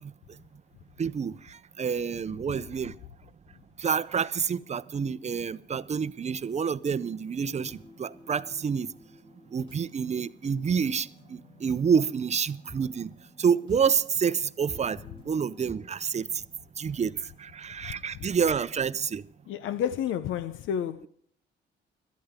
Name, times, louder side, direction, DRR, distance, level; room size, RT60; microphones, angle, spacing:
voice 1, 1.0-3.0 3.8-8.9 9.5-13.1 13.4-15.0 15.3-16.3 16.8-19.2, right 6 dB, 35° right, 0.6 m, -28 dB
Fuzzy Lofi Synth Song, 7.5-15.7, left 1 dB, 30° left, 3.8 m, -51 dB
voice 2, 19.5-21.1, left 9 dB, 85° left, 0.7 m, -30 dB
21.5 x 13.0 x 3.6 m
cardioid pair, 90°, 20 cm